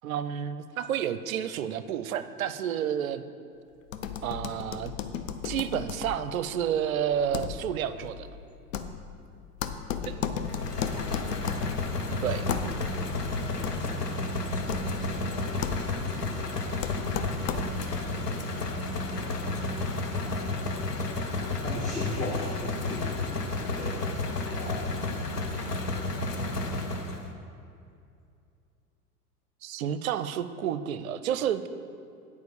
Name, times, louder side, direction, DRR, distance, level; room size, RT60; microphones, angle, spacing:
voice 1, 0.0-3.2 4.2-4.9 5.4-8.3 10.1-10.2 12.2-12.5 29.6-31.7, right 9 dB, 60° right, 12 dB, 0.6 m, -30 dB
sound 1, 3.9-18.0, left 7 dB, 55° left, 0.7 m, -36 dB
sound 2, 10.4-27.3, left 2 dB, 90° left, 0.9 m, -31 dB
voice 2, 10.4-10.8 15.1-15.5 21.6-23.1 23.7-24.1 24.5-24.9, left 1 dB, 15° left, -4 dB, 1.2 m, -37 dB
9.3 x 4.8 x 7.0 m, 2.5 s
figure-of-eight pair, 90°, 46 cm